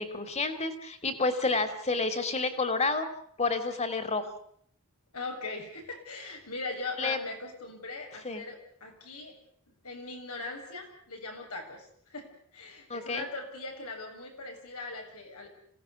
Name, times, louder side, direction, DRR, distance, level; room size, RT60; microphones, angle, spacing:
voice 1, 0.0-3.1 3.4-4.3 7.0-7.2 8.2-8.4 12.9-13.2, left 3 dB, 30° left, 10 dB, 2.8 m, -29 dB
voice 2, 5.1-9.4 9.7-15.5, left 3 dB, 85° left, 3 dB, 7.3 m, -40 dB
27.0 x 17.5 x 8.3 m, 0.65 s
head